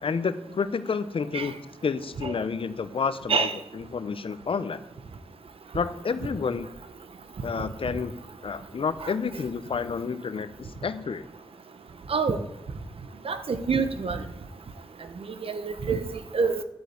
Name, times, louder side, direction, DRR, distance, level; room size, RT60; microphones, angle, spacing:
voice 1, 0.0-3.5 3.7-4.8 5.7-6.7 7.4-8.1 8.4-11.3, left 5 dB, 65° left, 13 dB, 1.0 m, -30 dB
voice 2, 13.2-14.2 15.4-16.6, right 5 dB, 70° right, 10 dB, 1.3 m, -26 dB
11.5 x 8.5 x 8.3 m, 0.86 s
cardioid pair, 45°, 10 cm